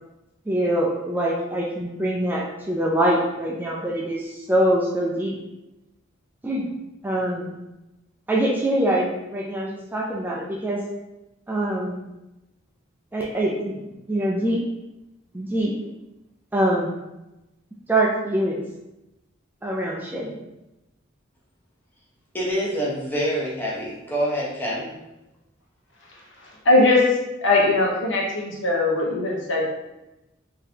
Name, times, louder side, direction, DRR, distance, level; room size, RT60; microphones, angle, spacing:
voice 1, 0.5-5.4 6.4-6.7 7.0-7.6 8.3-10.8 11.5-12.0 13.1-13.8 14.1-14.6 15.3-15.7 16.5-17.0 17.9-18.6 19.6-20.4, right 1 dB, 10° right, -3 dB, 0.3 m, -24 dB
voice 2, 22.3-24.9, equal, 10° left, -6 dB, 0.8 m, -26 dB
voice 3, 26.6-27.0 27.4-29.6, left 2 dB, 70° left, -2 dB, 0.9 m, -19 dB
3.7 x 2.7 x 2.8 m, 0.96 s
head